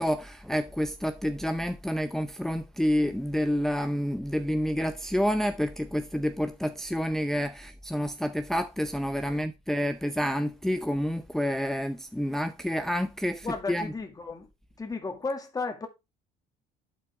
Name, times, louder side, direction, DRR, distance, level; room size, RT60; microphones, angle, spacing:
voice 1, 0.0-13.9, equal, ahead, 0.6 m, -29 dB
voice 2, 13.4-14.5 14.8-15.9, left 4 dB, 20° left, 2.0 m, -34 dB
11.5 x 4.4 x 3.6 m
supercardioid pair, 95°, 17 cm